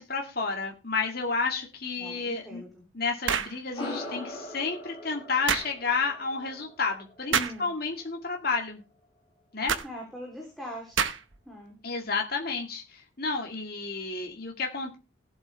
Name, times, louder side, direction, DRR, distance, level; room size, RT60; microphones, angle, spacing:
voice 1, 0.0-2.6 2.9-8.8 9.5-9.7 11.8-15.0, left 4 dB, 50° left, 2 dB, 2.1 m, -31 dB
voice 2, 2.0-2.7 7.3-7.7 9.8-11.1 11.5-11.8, left 1 dB, ahead, -1 dB, 3.4 m, -41 dB
sound 1, 3.3-3.6 5.5-5.7 7.3-7.6 9.7-9.9 11.0-11.4, right 7 dB, 75° right, 1.0 m, -27 dB
sound 2, 3.7-8.5, left 1 dB, 25° left, 6.6 m, -41 dB
18.0 x 8.2 x 3.4 m, 0.29 s
head